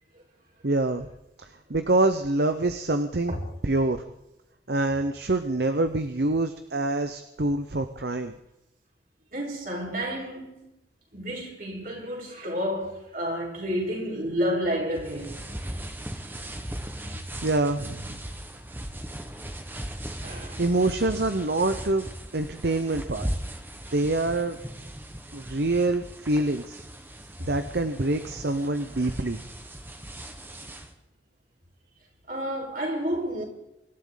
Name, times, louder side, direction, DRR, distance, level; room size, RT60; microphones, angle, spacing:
voice 1, 0.6-1.1 1.4-3.3 3.6-4.0 4.7-8.3 17.4-18.1 20.6-23.3 23.9-24.6 25.3-26.8 27.4-29.4, right 2 dB, 65° right, 0.9 m, -26 dB
voice 2, 9.3-10.7 11.1-15.4 20.2-20.6 29.0-29.1 32.3-33.4, equal, 50° right, 4.7 m, -30 dB
sound 1, 14.9-30.9, right 1 dB, 10° right, 1.3 m, -38 dB
25.5 x 13.0 x 4.0 m
head